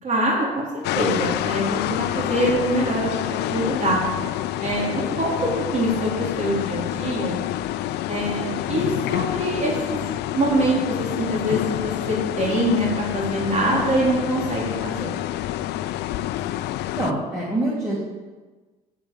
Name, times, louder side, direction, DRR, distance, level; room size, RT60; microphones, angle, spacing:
voice 1, 0.0-4.0 4.6-7.4 8.1-10.0 10.3-15.1, right 1 dB, 45° right, -4 dB, 3.8 m, -24 dB
sound 1, 0.8-17.1, left 13 dB, 80° left, 0.5 m, -27 dB
voice 2, 16.9-18.0, right 1 dB, 15° right, -7 dB, 3.0 m, -25 dB
8.8 x 7.9 x 8.9 m, 1.3 s
cardioid pair, 110°, 17 cm